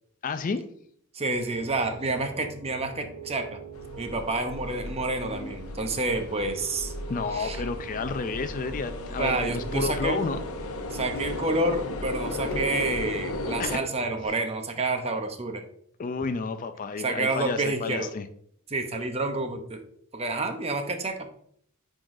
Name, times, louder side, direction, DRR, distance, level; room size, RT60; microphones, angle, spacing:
voice 1, 0.2-0.6 7.1-10.4 10.7-10.8 13.6-13.8 16.0-18.3, left 4 dB, 40° left, 10 dB, 0.4 m, -31 dB
voice 2, 1.1-3.6 4.0-6.9 7.3-7.6 9.2-10.2 10.9-15.6 17.0-18.1 18.7-19.8 20.1-21.3, right 2 dB, 30° right, 6 dB, 0.7 m, -29 dB
Piano, 1.3-14.3, right 6 dB, 80° right, 0.7 m, -43 dB
sound 1, 3.7-13.8, left 2 dB, 90° left, 0.7 m, -35 dB
9.6 x 3.8 x 2.6 m, 0.65 s
head